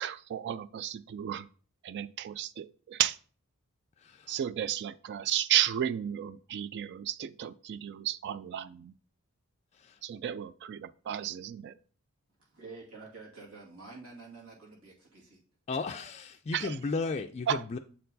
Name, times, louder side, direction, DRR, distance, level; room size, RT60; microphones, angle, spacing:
voice 1, 0.0-1.5 1.8-3.2 4.3-8.9 10.0-11.7 16.5-16.8 17.5-17.6, right 10 dB, 50° right, 15 dB, 0.3 m, -33 dB
voice 2, 4.0-4.4 9.7-10.0 15.7-17.8, left 4 dB, 30° left, 5 dB, 0.3 m, -35 dB
voice 3, 12.5-15.4, right 3 dB, 80° right, -3 dB, 2.4 m, -48 dB
7.4 x 4.5 x 4.0 m, 0.41 s
head